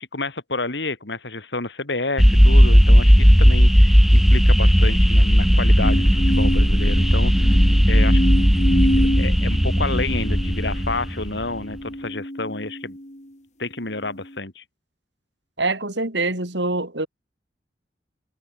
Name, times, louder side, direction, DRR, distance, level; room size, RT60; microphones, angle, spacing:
voice 1, 0.0-7.6 7.9-8.2 9.0-13.0 13.6-14.6, left 3 dB, 75° left, 3.2 m, -30 dB
sound 1, 2.2-11.4, equal, ahead, 2.0 m, -15 dB
sound 2, 5.8-13.3 13.9-14.4, equal, 40° left, 5.7 m, -28 dB
voice 2, 15.6-17.1, right 2 dB, 75° right, 4.4 m, -24 dB
head